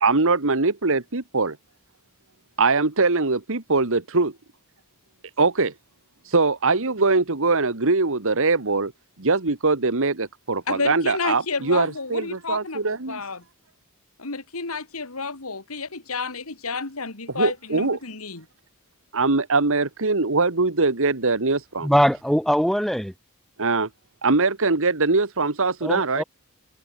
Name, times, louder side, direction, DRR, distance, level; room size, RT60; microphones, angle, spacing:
voice 1, 0.0-1.6 2.6-4.3 5.4-5.7 6.3-8.9 9.2-13.2 17.3-18.0 19.1-21.9 23.6-23.9 24.2-26.2, right 3 dB, 65° right, 1.7 m, -22 dB
voice 2, 10.7-12.8 13.1-13.4 14.2-18.5, left 4 dB, 75° left, 2.5 m, -30 dB
voice 3, 21.8-23.1 25.8-26.2, equal, ahead, 3.6 m, -21 dB
head